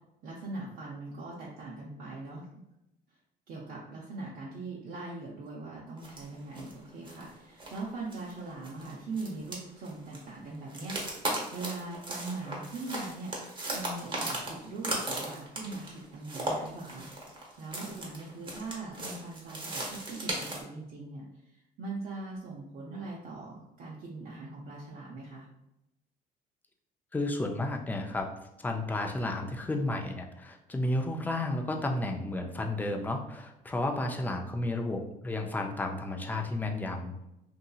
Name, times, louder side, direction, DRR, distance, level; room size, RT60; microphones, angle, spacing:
voice 1, 0.2-2.5 3.5-25.5, right 3 dB, 60° right, -5 dB, 0.6 m, -41 dB
sound 1, 6.0-6.3 6.5-6.7 7.0-7.3 7.6-7.8 8.1-10.2 10.7-20.6, right 1 dB, 30° right, 0.8 m, -37 dB
voice 2, 27.1-28.3 28.6-37.2, left 2 dB, 10° left, 3 dB, 0.4 m, -32 dB
2.7 x 2.7 x 2.3 m, 0.88 s
cardioid pair, 110°, 17 cm